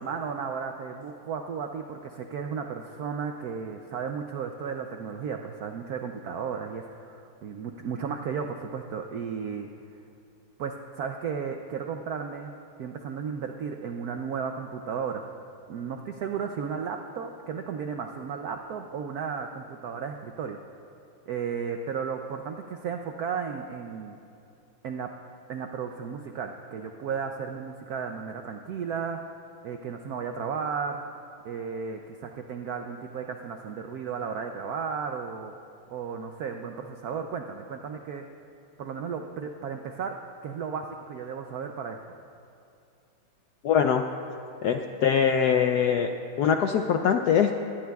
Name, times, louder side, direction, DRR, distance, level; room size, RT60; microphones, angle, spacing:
voice 1, 0.0-9.7 10.6-15.3 15.7-20.6 21.3-24.2 24.8-25.1 25.5-29.2 29.6-31.0 31.4-35.5 35.9-38.2 38.8-42.0, right 6 dB, 80° right, 5 dB, 0.8 m, -34 dB
voice 2, 43.6-44.0 44.6-46.1 46.4-47.5, left 7 dB, 75° left, 5 dB, 0.9 m, -22 dB
21.0 x 17.5 x 2.3 m, 2.6 s
omnidirectional pair, 2.3 m